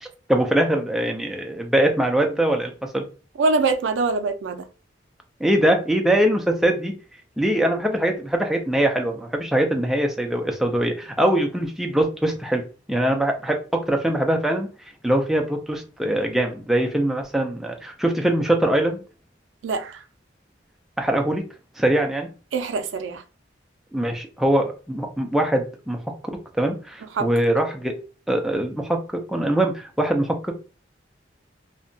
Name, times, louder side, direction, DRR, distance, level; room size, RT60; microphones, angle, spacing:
voice 1, 0.0-3.0 5.4-6.9 7.4-12.6 12.9-14.7 15.0-19.0 21.0-21.4 21.8-22.3 23.9-26.0 26.5-27.9 28.3-29.0 29.3-30.4, right 1 dB, ahead, 0.3 m, -22 dB
voice 2, 3.4-4.6 19.6-20.0 22.5-23.2 27.2-27.3, right 3 dB, 85° right, 0.4 m, -23 dB
2.7 x 2.1 x 2.5 m
head